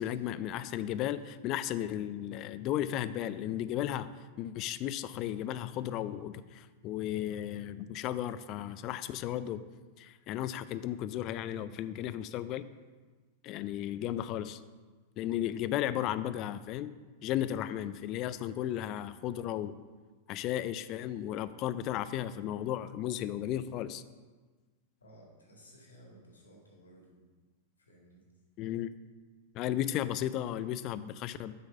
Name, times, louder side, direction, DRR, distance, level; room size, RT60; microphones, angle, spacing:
voice 1, 0.0-9.6 10.0-12.7 13.4-14.6 15.2-16.9 17.2-19.7 20.3-24.0 28.6-28.9 29.5-31.5, left 11 dB, 40° left, 14 dB, 0.3 m, -34 dB
voice 2, 25.0-27.3 27.8-28.3 29.5-30.0, right 1 dB, 80° left, -2 dB, 1.9 m, -57 dB
7.3 x 4.0 x 5.3 m, 1.3 s
figure-of-eight pair, 95°, 0 cm